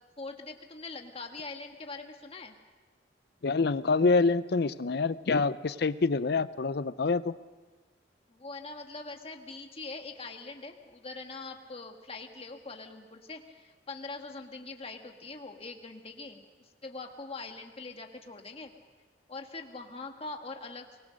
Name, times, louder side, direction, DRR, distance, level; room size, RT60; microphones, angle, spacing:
voice 1, 0.2-2.5 8.3-18.7 19.3-20.9, left 3 dB, 35° left, 4 dB, 1.6 m, -43 dB
voice 2, 3.4-7.3, left 4 dB, 60° left, 16 dB, 0.6 m, -26 dB
23.5 x 20.0 x 6.5 m, 1.3 s
head